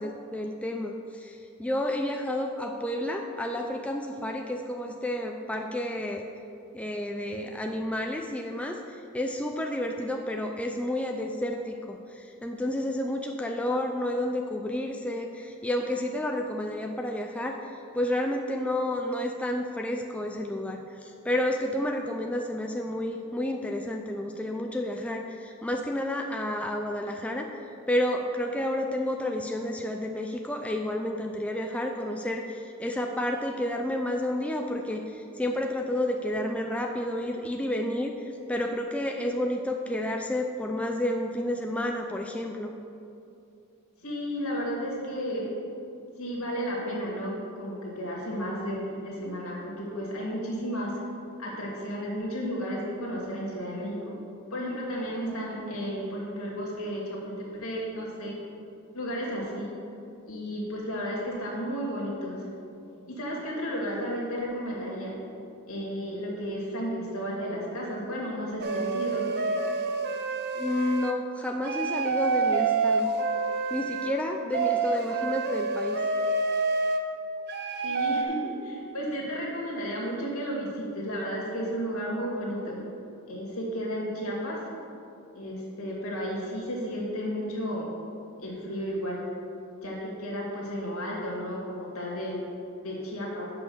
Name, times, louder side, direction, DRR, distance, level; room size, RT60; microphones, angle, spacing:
voice 1, 0.0-6.3 6.7-27.5 27.9-42.7 70.6-73.1 73.7-76.0, left 1 dB, 5° left, 2 dB, 0.3 m, -30 dB
voice 2, 44.0-45.5 46.2-51.0 51.4-54.2 54.5-58.4 58.9-59.7 60.3-62.4 63.1-65.1 65.7-69.3 77.8-82.8 83.3-84.6 85.3-87.9 88.4-89.2 89.8-92.4 92.8-93.5, equal, 75° left, -3 dB, 2.1 m, -33 dB
sound 1, 68.6-71.2 71.6-74.2 74.5-77.0 77.5-78.2, right 4 dB, 50° right, 0.5 m, -28 dB
6.3 x 5.4 x 7.0 m, 2.6 s
head